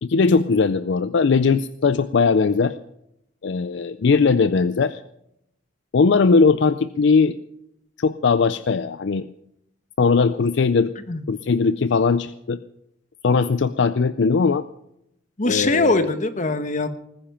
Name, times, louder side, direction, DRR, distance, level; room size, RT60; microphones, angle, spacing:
voice 1, 0.0-2.7 3.4-5.0 5.9-7.4 8.0-9.3 10.0-10.9 11.3-12.6 13.2-14.6 15.4-16.1, left 4 dB, 60° left, 13 dB, 0.4 m, -19 dB
voice 2, 15.4-16.9, left 2 dB, 40° left, 10 dB, 1.1 m, -22 dB
19.5 x 10.0 x 5.7 m, 0.80 s
head